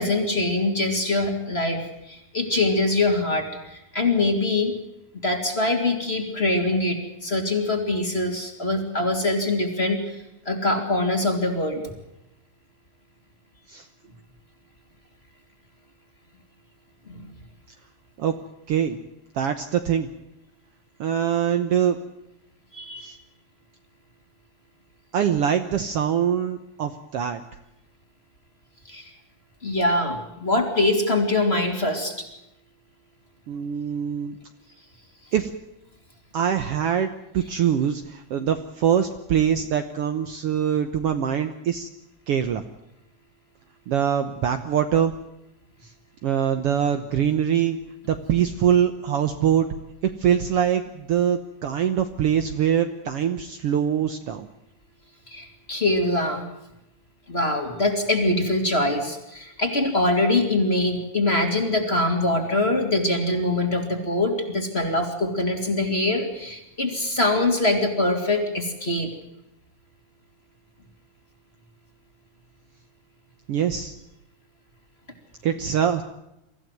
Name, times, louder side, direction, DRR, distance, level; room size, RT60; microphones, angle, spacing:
voice 1, 0.0-4.8 5.2-11.8 17.1-17.2 22.7-23.1 28.9-29.1 29.6-32.3 55.3-56.4 57.3-69.1, left 2 dB, 20° left, 4 dB, 3.0 m, -23 dB
voice 2, 18.7-19.0 19.3-20.1 21.0-22.0 23.0-23.1 25.1-27.4 33.5-34.4 35.3-35.5 36.3-41.9 42.3-42.6 43.9-45.1 45.8-45.9 46.2-47.8 48.0-49.7 50.0-54.5 73.5-73.9 75.4-76.0, right 9 dB, 60° right, 8 dB, 1.7 m, -23 dB
24.5 x 15.0 x 9.2 m, 0.88 s
omnidirectional pair, 3.3 m